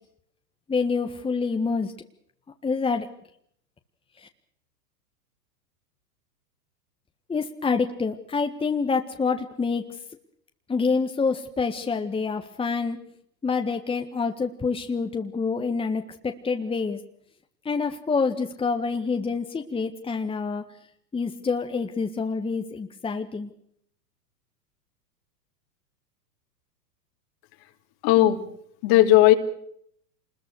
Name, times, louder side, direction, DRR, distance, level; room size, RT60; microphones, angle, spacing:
voice 1, 0.7-1.9 2.6-3.1 4.2-4.3 7.3-9.9 10.7-13.0 13.4-17.0 17.6-20.6 21.1-23.5, left 4 dB, 10° left, 6 dB, 1.6 m, -27 dB
voice 2, 28.0-28.4 28.8-29.3, left 14 dB, 45° left, 7 dB, 2.8 m, -16 dB
27.0 x 21.0 x 6.4 m, 0.68 s
hypercardioid pair, 100°, 49 cm